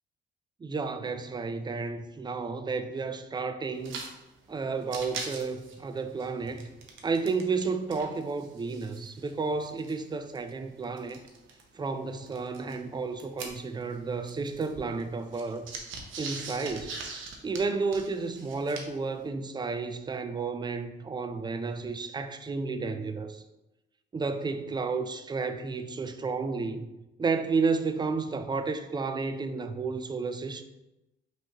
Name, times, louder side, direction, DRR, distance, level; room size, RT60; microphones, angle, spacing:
voice 1, 0.6-4.0 4.5-6.7 7.0-11.2 11.7-15.7 16.2-17.0 17.4-23.4 24.1-26.9 27.2-30.6, right 4 dB, 20° right, 0.4 m, -32 dB
sound 1, 3.8-4.1 4.4-4.5 4.8-7.7 7.9-11.6 12.3-14.0 14.2-19.1, right 4 dB, 75° right, 0.8 m, -42 dB
5.3 x 3.0 x 2.9 m
cardioid pair, 90°, 20 cm